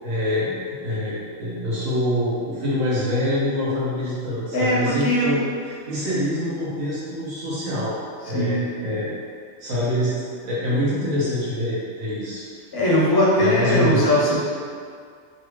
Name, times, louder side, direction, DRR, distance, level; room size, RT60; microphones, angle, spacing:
voice 1, 0.0-5.4 5.8-7.9 8.3-9.1 9.6-10.1 10.4-12.4 13.4-14.1, left 1 dB, 85° right, -9 dB, 1.3 m, -25 dB
voice 2, 4.5-5.4 8.2-8.7 12.7-14.4, left 1 dB, 30° left, -6 dB, 0.4 m, -20 dB
3.2 x 2.5 x 3.0 m, 2.1 s
omnidirectional pair, 1.4 m